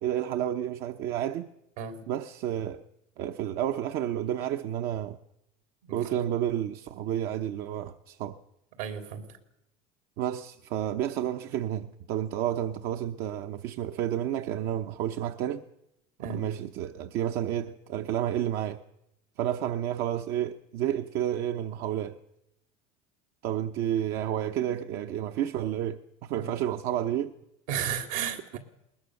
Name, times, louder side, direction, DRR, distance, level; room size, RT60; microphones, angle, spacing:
voice 1, 0.0-1.5 2.1-2.8 3.2-5.2 5.9-8.4 10.2-15.6 16.3-18.8 19.4-22.2 23.4-27.3, right 11 dB, 60° right, 0.9 m, -30 dB
voice 2, 8.8-9.2 16.2-16.4 26.3-26.5 27.7-28.6, right 8 dB, 80° right, 3.4 m, -33 dB
20.5 x 20.0 x 6.5 m
supercardioid pair, 100°, 18 cm